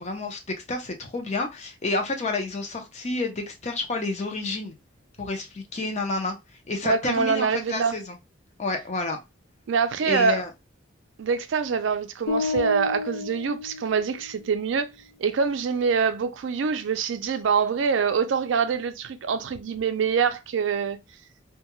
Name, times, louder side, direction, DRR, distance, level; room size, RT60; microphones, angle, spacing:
voice 1, 0.0-4.7 5.2-6.4 6.7-8.2 8.6-9.2 10.1-10.5, left 2 dB, 35° left, 0.5 m, -29 dB
voice 2, 6.8-8.0 9.7-10.4 11.2-14.9 15.2-21.0, right 5 dB, 70° right, 0.4 m, -25 dB
sound 1, 12.3-14.5, left 4 dB, 90° left, 0.4 m, -31 dB
2.2 x 2.1 x 3.0 m
head